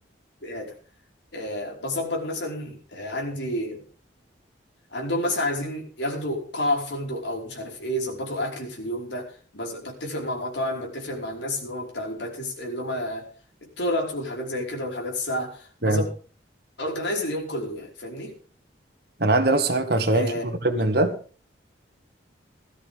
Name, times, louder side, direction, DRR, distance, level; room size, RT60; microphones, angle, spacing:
voice 1, 0.4-0.8 1.3-3.8 4.9-13.3 13.8-16.1 16.8-18.4 20.1-20.4, left 1 dB, 75° left, 0 dB, 5.2 m, -30 dB
voice 2, 19.2-21.2, right 2 dB, 60° right, 8 dB, 2.0 m, -22 dB
18.0 x 13.5 x 3.7 m, 0.39 s
head